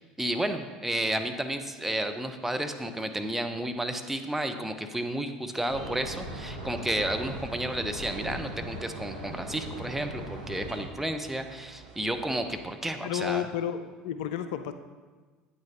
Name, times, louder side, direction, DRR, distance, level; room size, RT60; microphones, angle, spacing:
voice 1, 0.2-13.5, right 1 dB, 5° right, 6 dB, 0.7 m, -32 dB
sound 1, 5.7-10.9, right 1 dB, 85° right, 1.2 m, -39 dB
sound 2, 7.3-12.8, right 5 dB, 55° right, 0.9 m, -52 dB
voice 2, 13.0-14.7, left 9 dB, 65° left, 10 dB, 0.4 m, -31 dB
9.0 x 8.8 x 2.9 m, 1.4 s
figure-of-eight pair, 65°, 4 cm